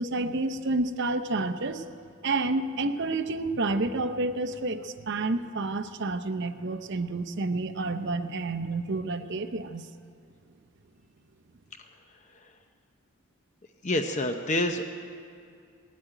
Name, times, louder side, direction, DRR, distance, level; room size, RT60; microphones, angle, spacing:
voice 1, 0.0-1.8 2.2-9.9, right 2 dB, 50° right, 7 dB, 0.7 m, -29 dB
voice 2, 13.8-14.9, left 1 dB, 30° left, 5 dB, 0.6 m, -28 dB
18.5 x 8.6 x 9.0 m, 2.4 s
head